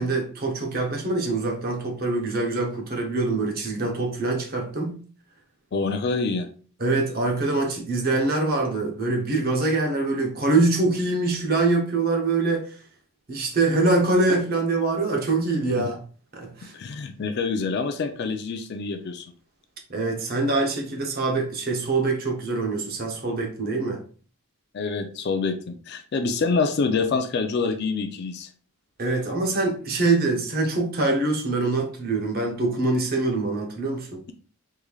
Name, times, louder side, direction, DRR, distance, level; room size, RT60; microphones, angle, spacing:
voice 1, 0.0-5.0 6.8-12.8 13.3-16.0 16.3-16.7 19.9-24.0 29.0-34.2, right 3 dB, 40° right, 0.8 m, -24 dB
voice 2, 5.7-6.5 15.8-15.9 16.7-19.2 24.7-28.5, left 4 dB, 50° left, 0.3 m, -26 dB
3.6 x 3.1 x 2.3 m
head